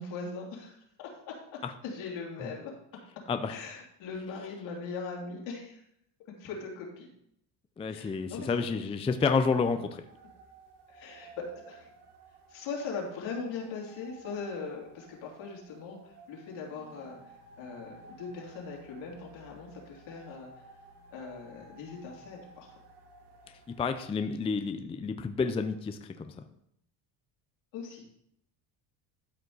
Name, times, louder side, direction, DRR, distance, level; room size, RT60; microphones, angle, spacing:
voice 1, 0.0-1.4 1.8-2.7 3.4-5.8 6.4-7.1 7.9-8.7 10.9-11.9 12.5-20.5 21.1-22.7 27.7-28.2, left 4 dB, 75° left, -2 dB, 3.1 m, -40 dB
voice 2, 7.8-10.1 23.7-26.3, left 5 dB, 15° left, 8 dB, 0.4 m, -30 dB
sound 1, 9.2-24.1, right 3 dB, 60° right, 2.1 m, -55 dB
12.5 x 5.2 x 4.0 m, 0.74 s
cardioid pair, 120°, 46 cm